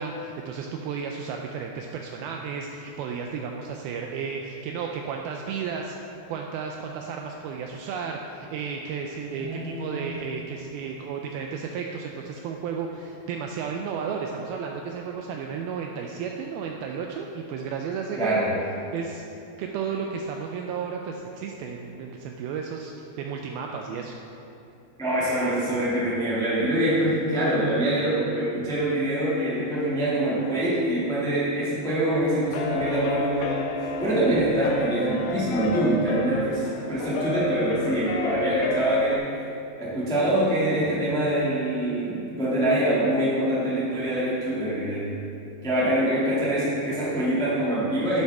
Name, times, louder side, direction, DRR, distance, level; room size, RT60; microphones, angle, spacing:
voice 1, 0.0-6.0 6.3-18.5 18.9-19.2 19.6-24.2, right 6 dB, 85° right, 2 dB, 2.2 m, -33 dB
voice 2, 9.3-10.1 18.1-18.5 25.0-39.3 39.8-45.1 45.6-48.2, right 1 dB, 5° left, -9 dB, 0.3 m, -25 dB
sound 1, 32.2-39.2, left 3 dB, 80° left, 2.0 m, -31 dB
11.0 x 8.0 x 3.5 m, 2.8 s
omnidirectional pair, 4.8 m